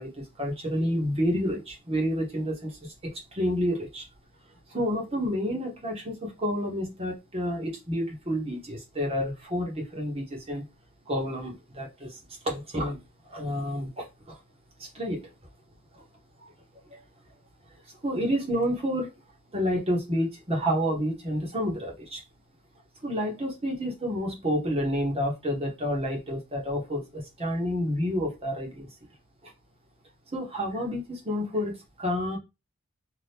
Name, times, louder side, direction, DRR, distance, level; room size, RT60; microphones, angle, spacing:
voice 1, 0.0-4.1 4.7-10.6 11.1-13.0 13.3-14.4 14.8-15.3 15.9-16.0 16.4-16.5 16.9-17.0 18.0-19.1 19.5-22.2 23.0-28.9 29.4-29.5 30.3-32.4, equal, 30° right, -1 dB, 1.1 m, -29 dB
2.8 x 2.6 x 3.4 m, 0.25 s
head